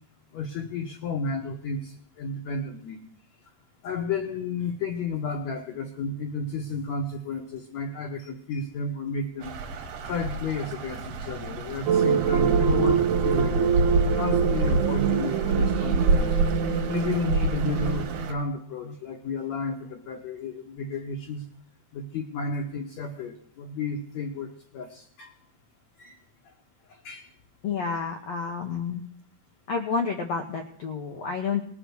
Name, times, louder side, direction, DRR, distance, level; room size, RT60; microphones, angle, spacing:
voice 1, 0.3-3.0 3.8-9.6 10.0-13.6 14.0-16.4 16.9-21.5 21.9-25.3 26.0-26.2 26.9-27.3 27.9-28.0, left 4 dB, 65° left, 0 dB, 1.9 m, -32 dB
sound 1, 9.4-18.3, right 3 dB, 70° right, 3.3 m, -27 dB
sound 2, 11.9-18.3, right 7 dB, 90° right, 2.8 m, -25 dB
voice 2, 27.6-29.0 29.7-31.7, left 5 dB, 80° left, 3 dB, 1.4 m, -30 dB
19.5 x 8.8 x 6.3 m, 0.62 s
omnidirectional pair, 4.5 m